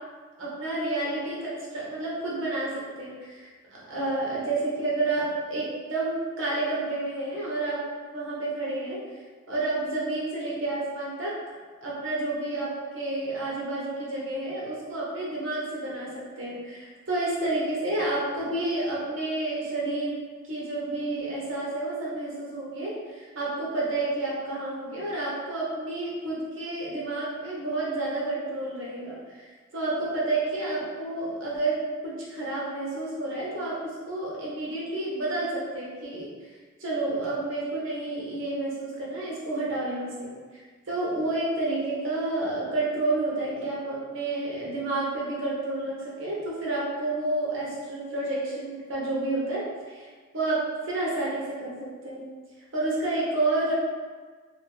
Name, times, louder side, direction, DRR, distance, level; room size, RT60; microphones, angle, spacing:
voice 1, 0.4-2.7 3.0-3.5 3.9-7.8 8.1-9.0 9.5-11.3 11.8-20.1 20.4-29.5 29.7-36.3 36.8-50.1 50.3-51.7 52.0-52.2 52.7-53.7, right 2 dB, 65° right, -5 dB, 0.8 m, -30 dB
2.5 x 2.5 x 3.0 m, 1.5 s
head